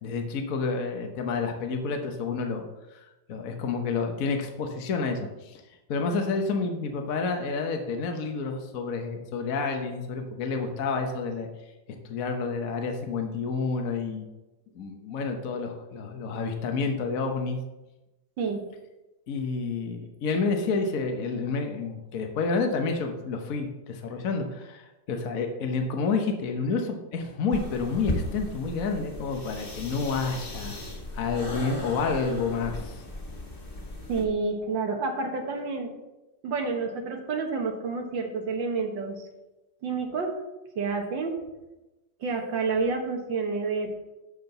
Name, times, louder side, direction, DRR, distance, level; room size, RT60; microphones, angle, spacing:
voice 1, 0.0-2.6 2.9-5.6 5.9-11.5 12.0-14.3 14.7-17.6 19.3-30.8 31.1-33.0, left 4 dB, 55° left, 4 dB, 1.3 m, -29 dB
sound 1, 27.5-34.2, left 1 dB, 30° left, 1.6 m, -36 dB
voice 2, 34.1-35.9 36.4-39.3 39.8-40.3 40.8-41.3 42.2-43.9, right 4 dB, 80° right, 3 dB, 2.1 m, -29 dB
12.0 x 4.5 x 6.6 m, 1.0 s
omnidirectional pair, 2.0 m